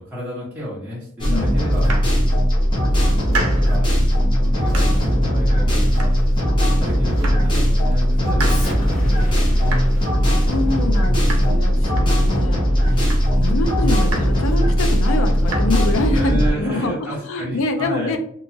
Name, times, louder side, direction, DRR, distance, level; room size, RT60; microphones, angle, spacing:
voice 1, 0.0-1.9 2.8-6.1 6.5-10.1 16.1-18.2, equal, 10° right, -8 dB, 0.7 m, -32 dB
sound 1, 1.2-16.5, equal, 20° left, 0.8 m, -18 dB
voice 2, 1.3-1.6 10.3-18.2, left 2 dB, 65° left, 5 dB, 0.4 m, -26 dB
Domestic sounds home sounds, 1.6-2.6 3.0-3.9 4.2-5.2 5.5-6.6 6.8-7.6 7.9-12.5 12.8-13.5 13.8-14.6 14.9-15.6, right 3 dB, 80° right, 0.6 m, -33 dB
Explosion, 8.4-13.6, right 1 dB, 35° left, 1.5 m, -34 dB
2.8 x 2.3 x 2.6 m, 0.67 s
head